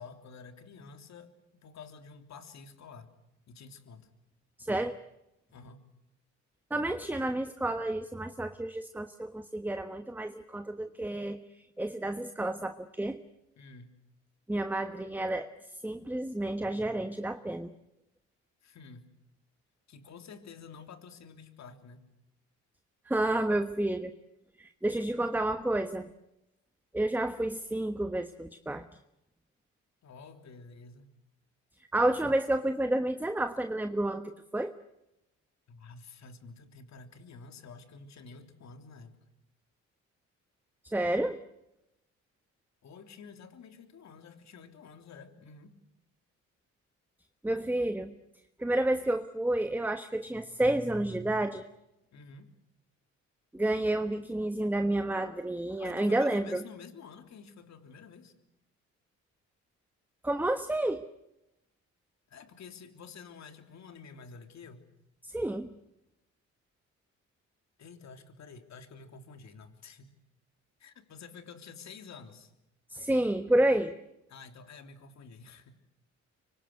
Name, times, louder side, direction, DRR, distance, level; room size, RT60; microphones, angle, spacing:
voice 1, 0.0-1.3 1.6-3.1 3.5-4.1 5.5-5.8 13.6-13.9 18.6-19.0 19.9-22.0 30.0-31.1 35.7-39.2 42.8-45.8 52.1-52.5 55.8-58.3 62.3-64.8 67.8-70.2 70.8-72.5 74.3-75.7, left 5 dB, 65° left, 7 dB, 3.4 m, -49 dB
voice 2, 4.6-4.9 6.7-11.4 11.8-13.2 14.5-15.5 15.8-17.7 23.1-24.1 24.6-26.1 26.9-28.8 31.9-34.7 40.9-41.4 47.4-48.1 48.6-51.6 53.5-56.6 60.2-61.0 65.2-65.7 72.9-73.9, right 1 dB, 5° right, 9 dB, 1.3 m, -30 dB
25.0 x 24.0 x 8.3 m, 0.88 s
cardioid pair, 90°, 30 cm